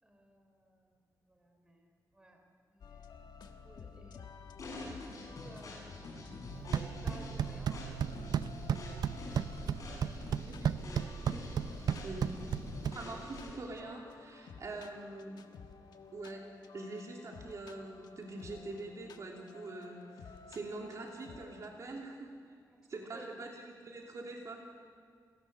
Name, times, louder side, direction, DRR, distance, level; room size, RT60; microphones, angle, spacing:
voice 1, 0.0-1.0 1.3-2.4 2.7-3.3 3.6-4.6 4.9-6.0 6.7-8.2 22.7-23.3, right 1 dB, 15° right, 3 dB, 3.4 m, -57 dB
sound 1, 2.8-21.7, left 6 dB, 80° left, 1.4 m, -53 dB
sound 2, 4.6-13.7, left 2 dB, 55° left, 6.4 m, -47 dB
sound 3, 6.5-13.5, right 8 dB, 70° right, 0.6 m, -35 dB
voice 2, 12.0-12.4 12.9-15.3 16.1-16.4 16.7-22.3 22.9-24.6, right 2 dB, 50° right, 0 dB, 2.8 m, -44 dB
29.5 x 17.5 x 6.8 m, 2.1 s
wide cardioid pair, 165°, 7 cm